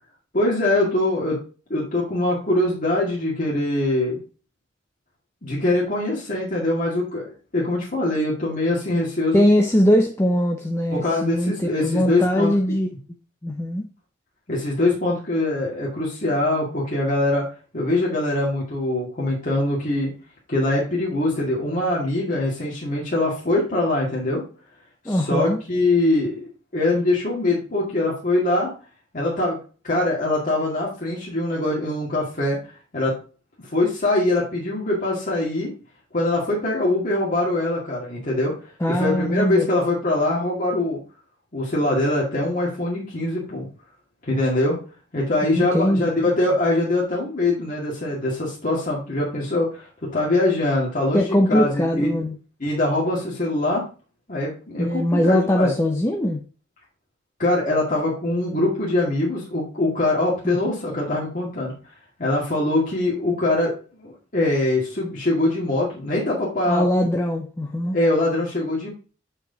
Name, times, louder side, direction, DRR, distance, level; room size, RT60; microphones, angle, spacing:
voice 1, 0.3-1.4 1.7-4.2 5.4-9.4 10.9-12.8 14.5-17.5 17.7-20.1 20.5-24.4 25.0-28.7 29.1-29.6 29.8-32.6 32.9-33.2 33.7-35.7 36.1-38.5 38.9-41.0 41.5-43.7 44.2-44.8 45.1-49.9 50.1-52.2 52.6-53.8 54.3-55.7 57.4-61.7 62.2-63.7 64.0-66.8 67.9-68.9, left 2 dB, 40° left, 2.1 m, -23 dB
voice 2, 9.3-12.9 13.4-13.8 25.1-25.6 38.8-39.7 45.5-46.2 51.1-52.4 54.8-56.4 60.4-60.6 66.7-68.0, equal, 15° left, 0.7 m, -21 dB
7.7 x 4.9 x 3.9 m
head